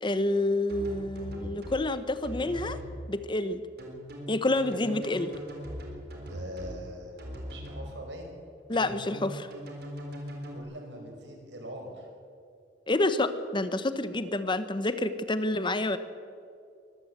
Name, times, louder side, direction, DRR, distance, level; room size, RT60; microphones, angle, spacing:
voice 1, 0.0-2.8 3.1-3.6 4.3-5.3 8.7-9.5 12.9-16.0, left 2 dB, 25° left, 12 dB, 0.9 m, -28 dB
sound 1, 0.7-1.8 2.2-2.9 3.8-6.8 7.2-7.8 8.7-10.6, equal, 60° right, 4.2 m, -40 dB
voice 2, 6.3-7.1 7.5-8.3 10.5-12.1, equal, 75° right, 2 dB, 5.2 m, -42 dB
23.0 x 14.5 x 8.0 m, 2.4 s
head